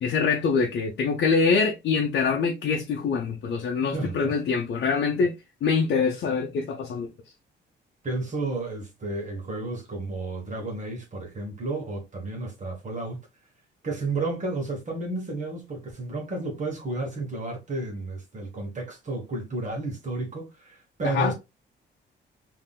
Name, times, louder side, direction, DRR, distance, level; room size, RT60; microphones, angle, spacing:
voice 1, 0.0-5.3 5.6-7.1 21.0-21.3, left 5 dB, 60° left, 0.6 m, -24 dB
voice 2, 3.9-4.4 8.0-13.2 13.8-21.3, right 2 dB, 40° right, 1.2 m, -32 dB
3.5 x 2.7 x 2.3 m
cardioid pair, 90°, 20 cm